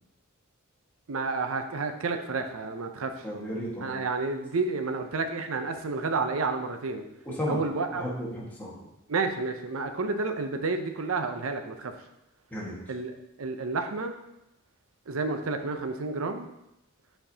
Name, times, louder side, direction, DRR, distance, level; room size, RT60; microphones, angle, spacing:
voice 1, 1.1-3.3 3.8-7.1 7.5-8.0 9.1-11.9 12.9-14.2 15.1-16.5, right 3 dB, 80° right, 6 dB, 0.6 m, -30 dB
voice 2, 3.2-3.9 7.2-7.6 7.9-8.7 12.5-12.7, equal, 10° left, -6 dB, 1.6 m, -33 dB
7.7 x 4.5 x 2.8 m, 0.87 s
head